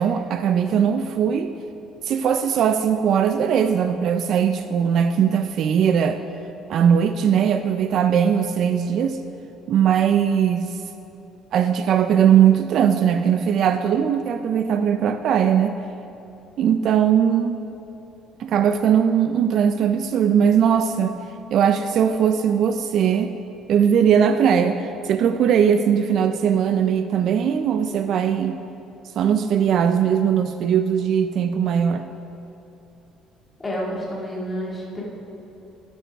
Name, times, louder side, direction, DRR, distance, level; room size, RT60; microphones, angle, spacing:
voice 1, 0.0-1.5 2.0-6.2 6.7-9.2 9.7-10.7 11.5-15.7 16.6-17.7 18.4-21.2 21.5-23.3 23.7-28.6 29.2-32.1, right 8 dB, 50° right, 9 dB, 0.3 m, -19 dB
voice 2, 33.6-35.0, equal, 15° left, -4 dB, 1.9 m, -29 dB
13.5 x 8.5 x 3.5 m, 3.0 s
cardioid pair, 165°, 0 cm